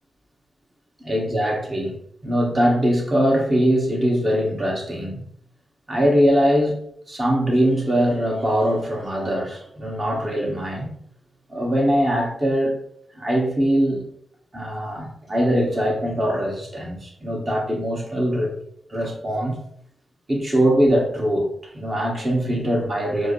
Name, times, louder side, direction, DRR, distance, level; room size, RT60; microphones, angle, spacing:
voice 1, 1.0-1.9 2.2-5.2 5.9-6.7 7.1-10.9 11.5-12.8 13.2-14.0 14.5-18.5 18.9-19.6 20.3-23.3, equal, 35° right, -1 dB, 1.4 m, -22 dB
4.5 x 2.1 x 3.2 m, 0.67 s
supercardioid pair, 45°, 0 cm